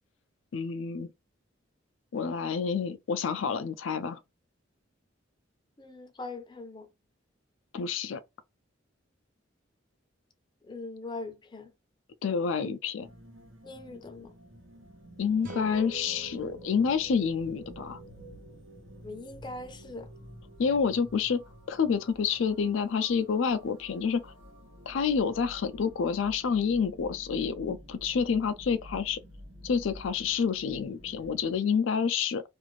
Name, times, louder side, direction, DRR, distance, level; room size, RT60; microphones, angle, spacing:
voice 1, 0.5-1.1 2.1-4.2 7.7-8.2 12.2-13.1 15.2-18.0 20.6-21.4 21.7-24.3 24.9-29.2 29.6-32.4, left 6 dB, 80° left, 0.4 m, -28 dB
voice 2, 5.8-6.9 10.6-11.7 13.6-14.3 19.0-20.1, left 2 dB, 25° left, 0.5 m, -41 dB
sound 1, 13.0-31.6, equal, 85° right, 0.9 m, -50 dB
sound 2, 15.3-19.9, right 3 dB, 65° right, 1.1 m, -49 dB
sound 3, 15.4-18.7, right 1 dB, 45° right, 0.6 m, -48 dB
2.5 x 2.4 x 3.0 m
head